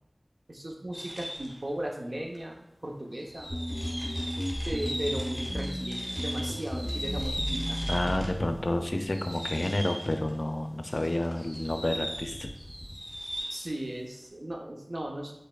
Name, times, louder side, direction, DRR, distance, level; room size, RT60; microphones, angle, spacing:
voice 1, 0.5-3.5 4.6-7.8 13.5-15.3, right 1 dB, 60° right, 0 dB, 0.8 m, -36 dB
sound 1, 0.9-1.6 2.3-2.4 3.1-8.4 8.7-10.4 10.8-13.7, equal, 15° right, 1.3 m, -38 dB
sound 2, 3.5-8.8, equal, ahead, 1.3 m, -34 dB
voice 2, 7.9-12.5, left 1 dB, 60° left, 6 dB, 0.4 m, -30 dB
5.3 x 4.0 x 2.3 m, 0.80 s
wide cardioid pair, 45°, 0 cm